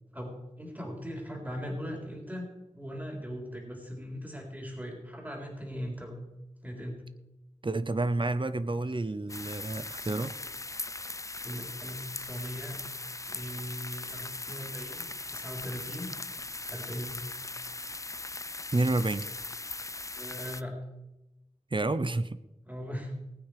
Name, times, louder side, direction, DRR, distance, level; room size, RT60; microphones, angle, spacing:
voice 1, 0.1-6.2 6.6-7.0 11.4-12.8 13.3-15.1 15.3-16.1 16.7-17.2 20.1-20.7 22.7-23.1, equal, 15° right, 1 dB, 3.8 m, -39 dB
voice 2, 7.6-10.3 18.7-19.3 21.7-22.4, right 2 dB, 40° right, 14 dB, 0.8 m, -29 dB
sound 1, 9.3-20.6, left 2 dB, 25° left, 0.4 m, -39 dB
19.5 x 9.0 x 4.9 m, 0.98 s
wide cardioid pair, 55°, 13 cm